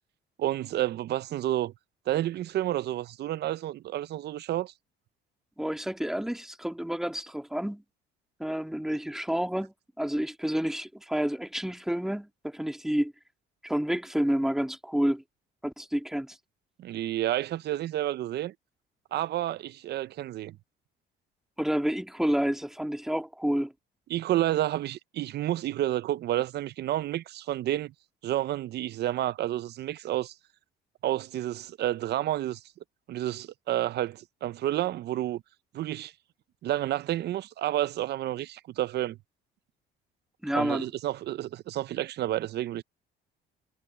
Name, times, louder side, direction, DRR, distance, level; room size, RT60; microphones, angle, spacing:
voice 1, 0.4-1.7 2.1-4.7 16.8-18.5 19.1-20.6 24.1-27.9 28.2-30.3 31.0-32.6 33.1-35.4 35.7-36.1 36.6-39.2 40.5-42.8, right 13 dB, 55° right, 0.6 m, -30 dB
voice 2, 5.6-7.8 8.4-13.1 13.6-15.2 15.6-16.4 21.6-23.7 40.4-40.9, equal, ahead, 2.0 m, -29 dB
cardioid pair, 110°, 21 cm